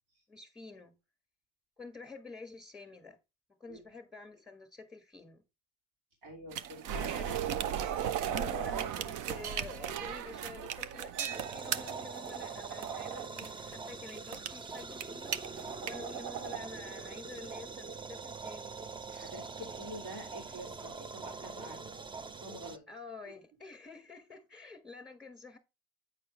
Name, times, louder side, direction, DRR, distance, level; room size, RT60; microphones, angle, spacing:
voice 1, 0.3-1.0 1.8-3.2 3.6-5.4 6.9-7.4 8.3-15.4 15.8-18.9 22.9-25.6, left 4 dB, ahead, 1.7 m, -49 dB
voice 2, 6.2-7.1 8.2-8.5 19.1-21.8 22.3-22.8 23.2-23.3, equal, 85° right, 3.0 m, -47 dB
sound 1, 6.5-16.6, right 9 dB, 60° right, 0.7 m, -36 dB
sound 2, 11.3-22.8, right 4 dB, 15° right, 0.4 m, -44 dB
9.0 x 4.5 x 3.3 m
hypercardioid pair, 75°, 35 cm